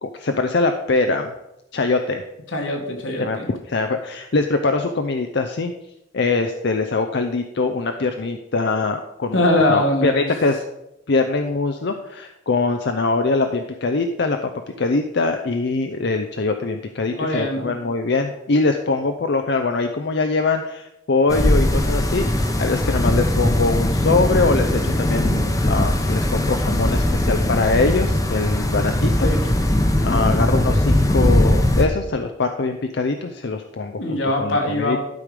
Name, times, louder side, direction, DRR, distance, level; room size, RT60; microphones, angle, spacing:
voice 1, 0.0-1.3 1.7-2.2 3.2-5.7 6.1-9.4 9.7-10.6 11.1-14.5 14.8-29.3 30.0-35.0, left 3 dB, 60° left, 6 dB, 0.6 m, -22 dB
voice 2, 2.5-3.5 9.3-10.1 17.1-17.7 29.2-29.5 34.0-35.0, left 1 dB, 85° left, 2 dB, 1.9 m, -21 dB
sound 1, 21.3-31.9, left 1 dB, 20° left, 0.9 m, -19 dB
12.0 x 4.9 x 5.1 m, 0.87 s
head